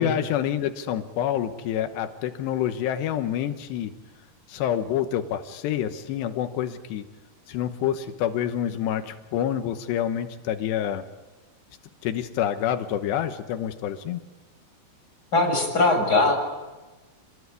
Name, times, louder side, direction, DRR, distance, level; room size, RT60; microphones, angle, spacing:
voice 1, 0.0-3.9 4.5-7.0 7.5-11.0 12.0-14.2, left 10 dB, 90° left, 8 dB, 3.3 m, -27 dB
voice 2, 15.3-16.3, left 2 dB, 20° left, 1 dB, 7.7 m, -21 dB
29.0 x 21.0 x 9.7 m, 1.2 s
omnidirectional pair, 4.8 m